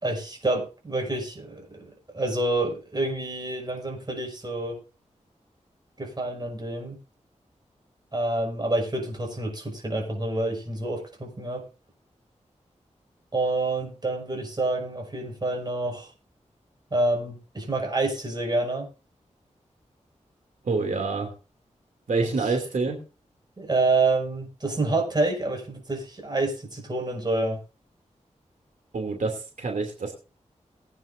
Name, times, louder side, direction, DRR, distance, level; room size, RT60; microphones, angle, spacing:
voice 1, 0.0-4.8 6.0-7.0 8.1-11.6 13.3-16.1 16.9-18.9 22.2-22.5 23.6-27.6, right 2 dB, 35° right, 1 dB, 6.0 m, -28 dB
voice 2, 20.6-21.3 22.1-23.0 28.9-30.1, right 4 dB, 90° right, 3 dB, 2.7 m, -27 dB
21.5 x 9.3 x 2.7 m, 0.33 s
wide cardioid pair, 95°, 13 cm